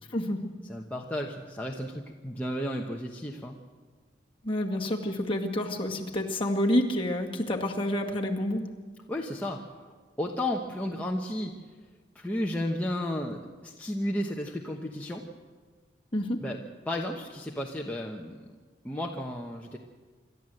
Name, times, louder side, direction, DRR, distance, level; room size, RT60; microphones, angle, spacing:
voice 1, 0.1-0.5 4.4-8.6 16.1-16.4, left 1 dB, 30° left, 0 dB, 2.0 m, -28 dB
voice 2, 0.7-3.5 9.1-9.6 10.2-11.5 12.1-15.2 16.4-16.6 16.9-18.4 18.8-19.8, left 1 dB, 10° left, -1 dB, 1.1 m, -33 dB
27.0 x 12.5 x 7.8 m, 1.4 s
head